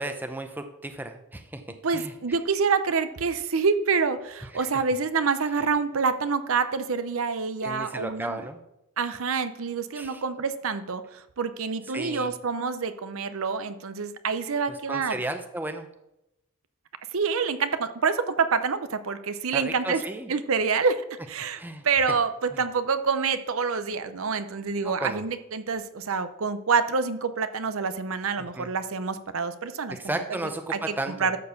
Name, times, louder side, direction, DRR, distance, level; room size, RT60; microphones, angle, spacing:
voice 1, 0.0-1.6 1.9-2.1 4.5-4.7 7.6-8.6 9.9-10.2 11.9-12.3 14.7-15.9 19.5-20.3 21.6-21.8 22.5-22.6 24.8-25.2 28.4-28.7 29.9-31.3, right 1 dB, 10° right, 7 dB, 0.6 m, -34 dB
voice 2, 1.8-8.4 9.0-15.2 17.1-20.0 20.3-30.0 30.7-30.8 31.1-31.4, right 5 dB, 70° right, 11 dB, 0.6 m, -27 dB
11.5 x 4.4 x 6.9 m, 0.90 s
head